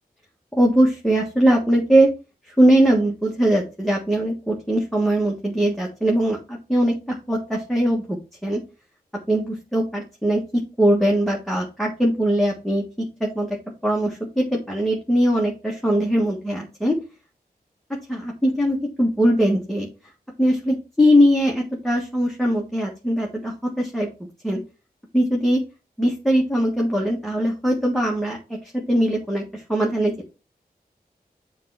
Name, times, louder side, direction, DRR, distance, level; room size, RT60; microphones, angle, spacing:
voice 1, 0.5-2.1 2.6-8.6 9.3-10.4 10.8-12.8 13.2-13.6 13.8-17.0 17.9-19.9 20.4-24.1 24.4-24.6 25.1-25.6 26.0-28.4 28.7-30.1, equal, ahead, -2 dB, 1.5 m, -21 dB
7.3 x 3.4 x 5.6 m, 0.30 s
wide cardioid pair, 85°, 16 cm